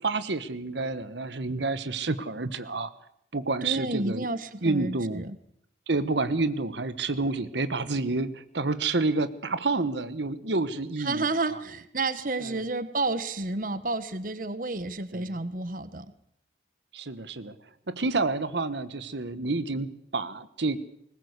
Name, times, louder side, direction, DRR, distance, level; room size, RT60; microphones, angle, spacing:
voice 1, 0.0-2.9 3.3-4.3 4.6-5.3 5.9-11.2 12.4-12.6 15.1-15.3 16.9-17.5 17.9-20.8, right 3 dB, 80° right, 13 dB, 1.2 m, -29 dB
voice 2, 3.6-5.4 11.0-16.1, right 2 dB, 50° right, 14 dB, 1.2 m, -30 dB
21.0 x 20.0 x 8.1 m, 0.71 s
head